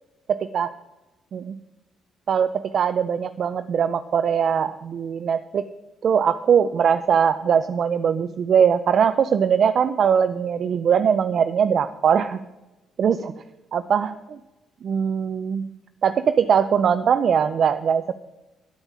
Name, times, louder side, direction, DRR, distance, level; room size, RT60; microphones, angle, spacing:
voice 1, 0.3-0.7 1.3-1.6 2.3-5.6 6.0-12.4 13.0-13.3 13.7-14.4 14.8-15.7 16.0-18.1, right 7 dB, 60° right, 10 dB, 0.5 m, -21 dB
9.9 x 9.0 x 7.4 m, 1.1 s
cardioid pair, 90°, 0 cm